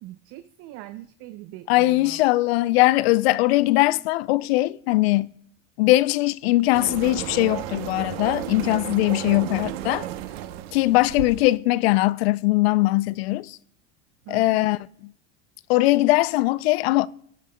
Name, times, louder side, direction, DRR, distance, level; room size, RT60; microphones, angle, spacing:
voice 1, 0.0-2.2 9.1-9.4 14.3-14.7, right 15 dB, 50° right, 0.5 m, -41 dB
voice 2, 1.7-5.3 5.8-10.1 10.7-13.6 14.3-15.1 15.7-17.1, left 19 dB, 75° left, 0.5 m, -21 dB
sound 1, 6.7-11.6, right 12 dB, 75° right, 0.9 m, -33 dB
18.5 x 9.1 x 2.2 m
supercardioid pair, 120°, 31 cm